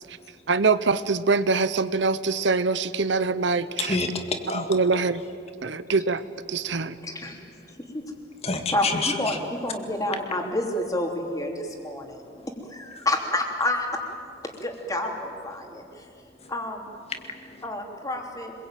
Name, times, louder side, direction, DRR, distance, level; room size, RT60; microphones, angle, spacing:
voice 1, 0.5-4.0 4.5-5.2 5.6-6.2 6.5-7.0, right 4 dB, 70° right, 14 dB, 0.8 m, -24 dB
voice 2, 3.8-4.8 8.4-9.1 17.1-17.6, left 3 dB, 35° left, 5 dB, 2.1 m, -28 dB
voice 3, 7.0-7.4 7.9-8.0 8.7-12.2 12.7-14.0 14.4-16.1 16.5-16.9 17.6-18.5, left 1 dB, 20° left, 2 dB, 3.2 m, -29 dB
26.0 x 22.0 x 9.2 m, 2.5 s
head